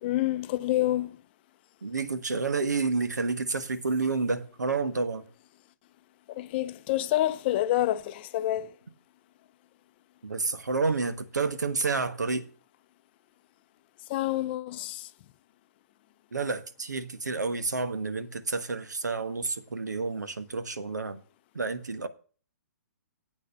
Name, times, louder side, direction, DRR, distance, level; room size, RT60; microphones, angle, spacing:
voice 1, 0.0-1.2 6.3-8.7 14.1-15.1, left 14 dB, 35° left, 0.6 m, -28 dB
voice 2, 1.8-5.2 10.2-12.5 16.3-21.2 21.5-22.1, right 4 dB, 80° right, 1.3 m, -29 dB
8.7 x 6.5 x 7.0 m
figure-of-eight pair, 130°, 9 cm